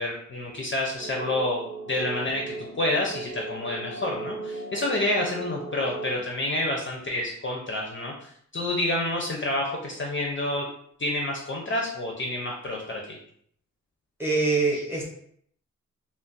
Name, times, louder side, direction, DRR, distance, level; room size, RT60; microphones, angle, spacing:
voice 1, 0.0-1.6 1.9-10.6 11.0-13.2 14.7-14.8, left 1 dB, 40° left, -1 dB, 0.4 m, -28 dB
sound 1, 1.0-6.1, right 3 dB, 55° right, 0.8 m, -37 dB
voice 2, 14.2-15.2, right 3 dB, 5° right, -3 dB, 0.8 m, -24 dB
2.3 x 2.0 x 3.8 m, 0.65 s
wide cardioid pair, 150°, 31 cm